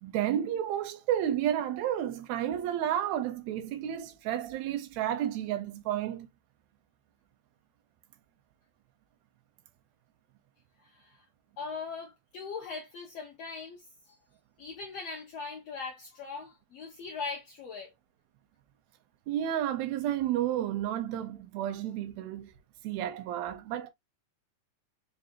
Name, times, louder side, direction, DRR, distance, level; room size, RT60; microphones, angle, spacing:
voice 1, 0.0-6.3 19.3-22.5 22.8-23.9, right 11 dB, 80° right, 1.6 m, -31 dB
voice 2, 10.8-11.2 11.6-14.2 14.6-17.9, left 4 dB, 70° left, 1.6 m, -40 dB
5.2 x 2.7 x 2.8 m
omnidirectional pair, 3.9 m